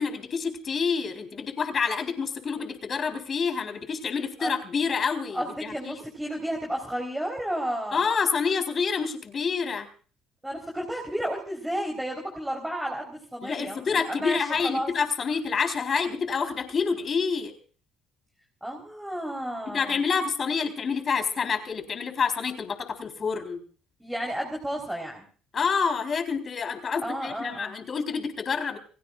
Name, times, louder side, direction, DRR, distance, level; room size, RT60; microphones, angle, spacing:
voice 1, 0.0-6.0 7.9-9.9 13.4-17.5 19.7-23.6 25.5-28.8, left 5 dB, 40° left, 6 dB, 4.0 m, -28 dB
voice 2, 5.3-8.0 10.4-14.9 18.6-20.0 24.0-25.3 27.0-27.7, equal, 5° right, 1 dB, 3.9 m, -32 dB
29.5 x 16.0 x 2.5 m, 0.42 s
cardioid pair, 105°, 0 cm